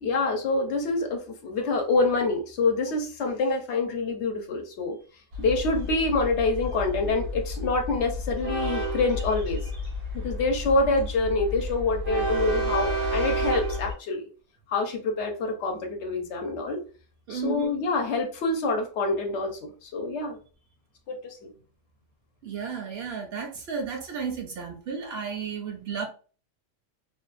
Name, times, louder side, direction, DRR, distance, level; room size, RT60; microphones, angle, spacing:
voice 1, 0.0-5.0 5.4-9.6 10.2-14.2 14.7-16.8 17.3-20.4 21.1-21.5, left 3 dB, 70° left, 4 dB, 0.9 m, -26 dB
Train, 5.3-13.9, equal, 80° right, 1.2 m, -31 dB
voice 2, 17.3-17.7 22.4-26.1, right 6 dB, 65° right, 3 dB, 0.7 m, -33 dB
2.6 x 2.2 x 2.4 m, 0.37 s
omnidirectional pair, 1.3 m